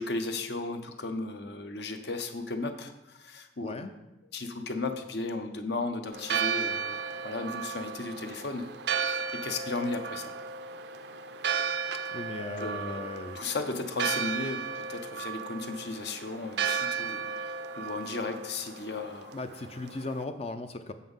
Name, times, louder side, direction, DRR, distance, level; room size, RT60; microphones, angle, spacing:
voice 1, 0.0-3.7 4.3-8.7 9.1-10.3 12.6-13.0 13.3-19.4, left 3 dB, 60° left, 7 dB, 0.8 m, -35 dB
Church bell, 6.1-20.2, right 6 dB, 60° right, 0.4 m, -34 dB
voice 2, 12.1-13.5 19.3-20.9, left 2 dB, 35° left, 8 dB, 0.4 m, -37 dB
7.1 x 5.6 x 5.5 m, 0.95 s
head